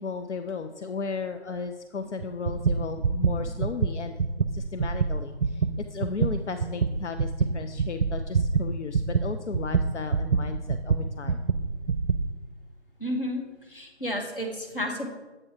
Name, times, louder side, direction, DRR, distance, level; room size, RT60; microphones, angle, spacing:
voice 1, 0.0-4.2 4.5-11.4, left 5 dB, 80° left, 7 dB, 0.5 m, -35 dB
sound 1, 2.2-12.3, right 5 dB, 70° right, 0.5 m, -26 dB
voice 2, 13.0-15.1, equal, 50° left, 2 dB, 1.2 m, -32 dB
7.6 x 4.3 x 4.7 m, 1.2 s
figure-of-eight pair, 175°, 35 cm